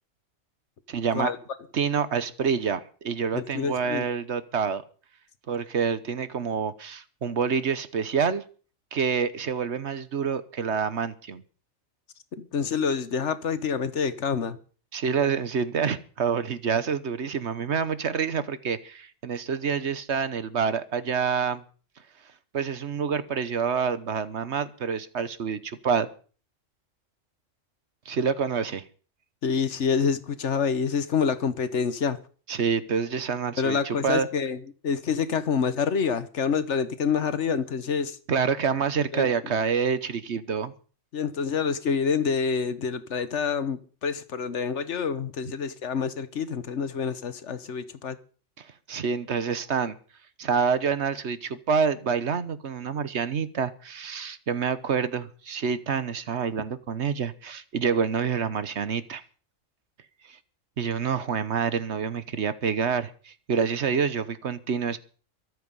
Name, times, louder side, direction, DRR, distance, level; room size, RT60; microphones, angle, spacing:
voice 1, 0.9-1.3 1.7-4.8 5.5-8.4 8.9-11.4 14.9-21.6 22.5-26.1 28.1-28.8 32.5-34.3 38.3-40.7 48.6-49.9 50.4-59.2 60.3-60.4 60.8-65.0, right 6 dB, 65° right, 1.3 m, -27 dB
voice 2, 3.3-4.0 12.4-14.6 29.4-32.2 33.6-38.2 39.1-39.3 41.1-48.2, left 6 dB, 65° left, 1.4 m, -27 dB
23.0 x 8.1 x 5.4 m
omnidirectional pair, 1.3 m